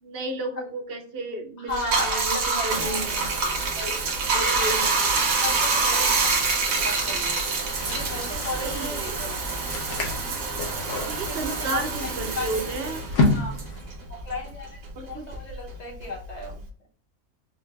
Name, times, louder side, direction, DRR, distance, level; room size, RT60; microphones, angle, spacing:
voice 1, 0.0-3.4 4.3-4.9 8.6-9.2 11.1-13.0 15.0-15.3, right 2 dB, 55° right, 5 dB, 0.7 m, -33 dB
voice 2, 1.6-3.2 3.7-4.0 4.3-4.9 5.4-7.5 7.8-9.6 10.7-12.9 13.3-13.6 14.1-16.6, left 2 dB, 35° left, -2 dB, 1.1 m, -36 dB
Bathtub (filling or washing), 1.7-14.5 14.8-16.7, right 3 dB, 75° right, 1.2 m, -26 dB
sound 1, 7.8-14.0, left 2 dB, 65° left, 1.1 m, -30 dB
3.8 x 2.2 x 3.3 m, 0.43 s
omnidirectional pair, 1.4 m